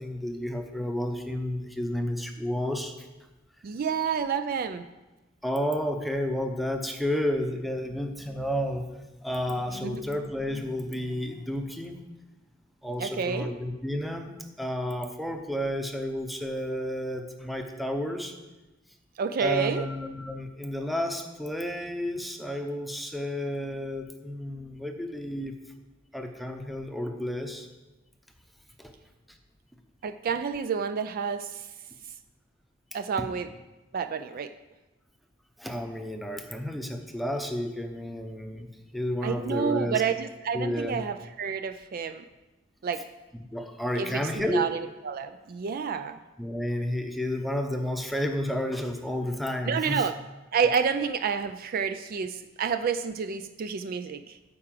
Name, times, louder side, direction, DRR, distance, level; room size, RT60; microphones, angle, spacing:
voice 1, 0.0-3.1 5.4-8.9 9.2-12.0 12.8-18.3 19.4-25.5 26.1-27.7 28.8-28.9 35.6-38.7 38.9-40.0 40.5-41.0 43.5-44.6 46.4-50.0, left 1 dB, ahead, 4 dB, 0.8 m, -31 dB
voice 2, 3.6-4.9 9.9-10.0 13.0-13.5 19.2-19.9 30.0-31.7 32.9-33.5 33.9-34.5 39.2-42.2 42.8-43.0 43.9-46.2 49.7-50.1 50.5-54.4, right 6 dB, 50° right, 9 dB, 0.4 m, -29 dB
9.6 x 4.7 x 7.5 m, 1.1 s
head